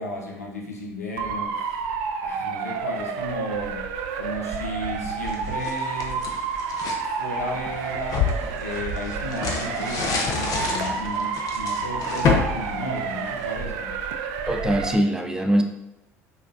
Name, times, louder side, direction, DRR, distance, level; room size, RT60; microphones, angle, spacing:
voice 1, 0.0-1.8 2.2-3.8 4.1-6.2 7.2-13.9, left 1 dB, 90° left, 0 dB, 0.7 m, -34 dB
Motor vehicle (road) / Siren, 1.2-15.0, right 5 dB, 65° right, 0.3 m, -30 dB
sound 1, 5.1-7.0 7.5-13.6, left 5 dB, 50° left, 0.7 m, -28 dB
voice 2, 14.5-15.6, equal, 10° right, 4 dB, 0.5 m, -22 dB
5.0 x 2.4 x 2.5 m, 0.87 s
hypercardioid pair, 65°, 8 cm